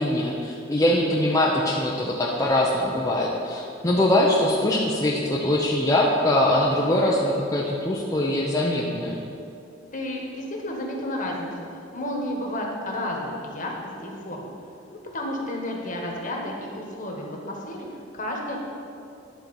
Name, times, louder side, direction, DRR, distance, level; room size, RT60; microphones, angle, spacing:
voice 1, 0.0-9.1, left 1 dB, 15° left, -4 dB, 0.7 m, -22 dB
voice 2, 9.9-14.5 14.9-17.9 18.1-18.6, left 1 dB, 45° left, -1 dB, 1.5 m, -32 dB
10.5 x 4.6 x 7.0 m, 2.6 s
head